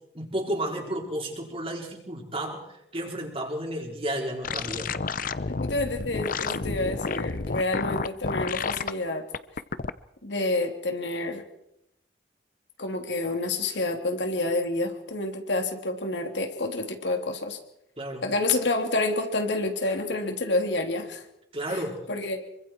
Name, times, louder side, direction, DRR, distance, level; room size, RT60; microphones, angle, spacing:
voice 1, 0.1-2.7 2.9-4.9 18.0-18.3 21.5-22.1, right 1 dB, 35° right, 1 dB, 4.4 m, -32 dB
sound 1, 4.4-8.9 9.3-9.9, left 4 dB, 50° left, 0.8 m, -30 dB
voice 2, 5.5-9.2 10.2-11.4 12.8-17.6 18.2-21.2 21.7-21.8 22.1-22.4, left 2 dB, 85° left, 4 dB, 3.1 m, -28 dB
26.5 x 24.0 x 4.6 m, 0.81 s
head